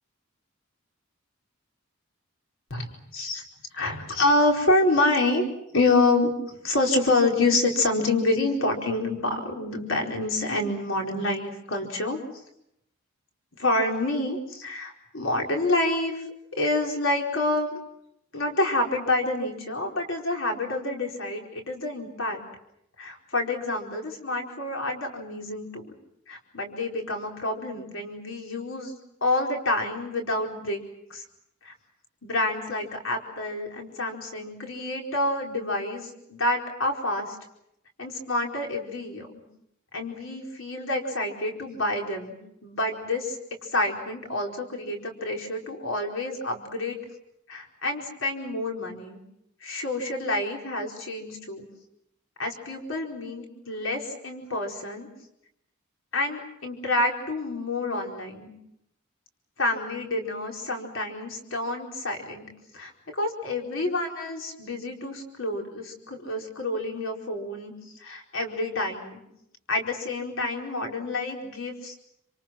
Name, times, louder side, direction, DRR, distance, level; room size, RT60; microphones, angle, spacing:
voice 1, 2.7-3.4 3.7-5.5 5.7-12.2 13.6-16.3 16.5-17.7 18.3-22.4 23.0-25.8 26.3-28.9 29.2-30.8 31.1-31.2 31.6-31.7 32.2-37.4 38.0-39.3 39.9-42.4 42.6-47.0 47.5-49.2 49.6-51.7 52.4-55.1 56.1-58.5 59.6-62.5 62.7-69.2 69.7-71.9, left 2 dB, 70° left, 1 dB, 4.6 m, -28 dB
28.5 x 27.5 x 6.0 m, 0.79 s
head